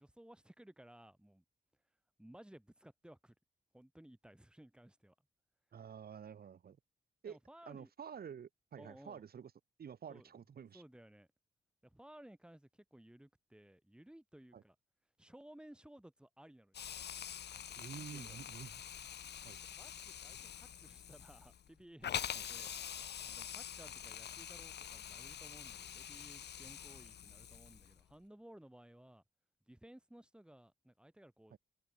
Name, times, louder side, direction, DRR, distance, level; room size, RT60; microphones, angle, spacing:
voice 1, 0.0-1.4 2.2-3.4 3.7-5.2 7.2-7.9 8.8-9.2 10.1-10.3 10.7-11.3 11.8-14.8 15.2-16.9 17.9-18.4 19.6-29.2 29.7-31.6, right 1 dB, 5° right, 5.3 m, -58 dB
voice 2, 5.7-6.8 7.2-7.4 7.7-9.5 9.8-10.8 14.5-14.6 17.8-18.8 19.4-19.6 22.3-22.4 31.5-31.6, right 7 dB, 65° right, 3.5 m, -49 dB
Hiss, 16.7-28.0, left 9 dB, 85° left, 3.0 m, -46 dB
wide cardioid pair, 125°, 17 cm